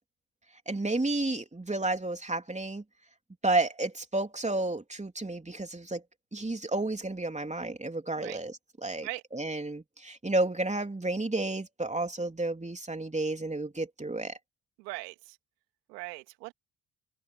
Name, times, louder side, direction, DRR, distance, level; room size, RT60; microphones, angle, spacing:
voice 1, 0.7-2.8 3.4-6.0 6.3-14.3, right 2 dB, 15° right, 3.4 m, -31 dB
voice 2, 14.8-15.4 15.9-16.5, right 23 dB, 85° right, 2.8 m, -40 dB
hypercardioid pair, 50°, 49 cm